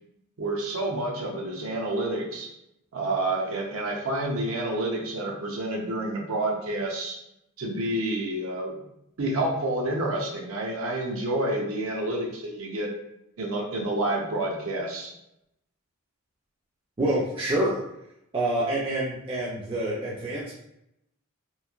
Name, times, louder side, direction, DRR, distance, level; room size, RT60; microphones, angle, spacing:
voice 1, 0.4-2.5 2.9-7.2 7.6-8.8 9.2-12.9 13.4-15.1, right 1 dB, 75° right, 0 dB, 0.5 m, -29 dB
voice 2, 17.0-17.8 18.3-20.5, right 1 dB, 25° right, -6 dB, 0.4 m, -27 dB
3.0 x 2.4 x 2.3 m, 0.82 s
head